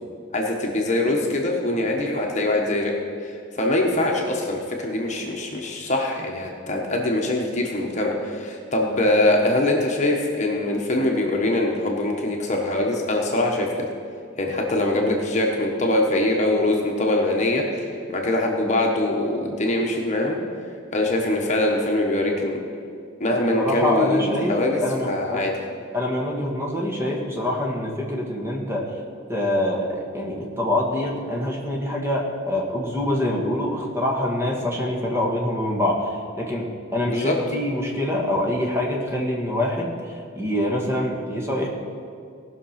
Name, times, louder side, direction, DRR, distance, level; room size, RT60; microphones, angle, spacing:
voice 1, 0.3-2.9 3.2-13.9 14.4-20.4 20.9-22.6 23.2-25.6 37.1-37.4, left 1 dB, 35° left, 0 dB, 1.3 m, -23 dB
voice 2, 23.5-25.4 25.9-28.9 29.3-39.9 40.3-41.7, left 1 dB, 10° right, -2 dB, 1.7 m, -25 dB
18.0 x 6.1 x 5.8 m, 2.3 s
head